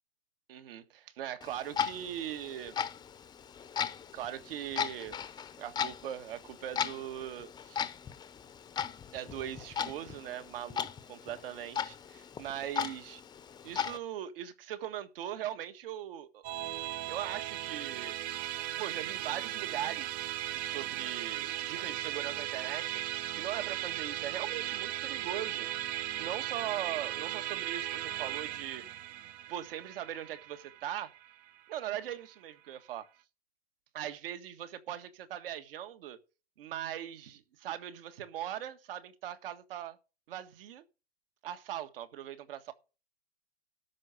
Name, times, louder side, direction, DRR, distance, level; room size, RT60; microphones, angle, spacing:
voice 1, 0.5-2.7 4.1-5.2 5.6-7.9 9.1-13.2 13.6-16.4 17.1-18.4 18.7-23.0 23.3-29.0 29.5-31.1 31.7-33.1 33.9-36.2 36.6-40.0 40.3-40.8 41.4-42.7, right 11 dB, 60° right, 1.6 m, -40 dB
Clock, 1.4-14.0, left 8 dB, 15° left, 0.8 m, -38 dB
Musical instrument, 16.4-32.0, right 13 dB, 25° right, 0.6 m, -37 dB
12.5 x 5.7 x 6.5 m
hypercardioid pair, 120°, 33 cm